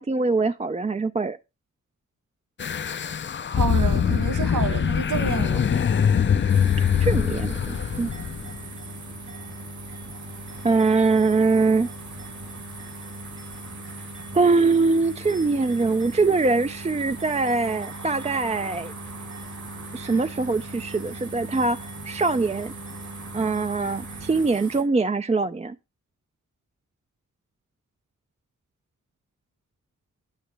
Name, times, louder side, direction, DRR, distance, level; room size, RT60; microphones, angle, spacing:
voice 1, 0.0-1.4 7.0-8.1 10.6-11.9 14.3-18.9 19.9-22.7 23.3-25.8, right 3 dB, 20° right, 0.4 m, -23 dB
sound 1, 2.6-8.6, left 8 dB, 40° left, 0.5 m, -23 dB
voice 2, 3.5-5.8, right 6 dB, 85° right, 1.1 m, -29 dB
sound 2, 5.5-24.4, equal, 40° right, 1.3 m, -41 dB
sound 3, 6.5-24.8, right 4 dB, 70° right, 4.5 m, -42 dB
10.5 x 8.9 x 3.2 m
wide cardioid pair, 170°, 30 cm